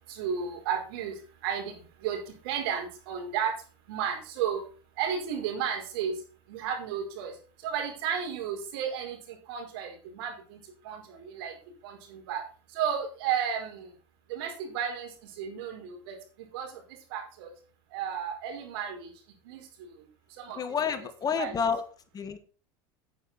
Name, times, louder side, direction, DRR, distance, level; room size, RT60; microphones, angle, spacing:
voice 1, 0.1-3.6 3.9-4.6 5.0-12.4 12.7-13.9 14.3-17.5 17.9-19.1 19.4-20.6 21.4-21.5, right 8 dB, 75° right, 4 dB, 4.8 m, -34 dB
voice 2, 20.5-21.8 22.1-22.4, left 6 dB, 30° left, 9 dB, 1.7 m, -29 dB
9.7 x 9.4 x 4.3 m, 0.38 s
supercardioid pair, 105°, 13 cm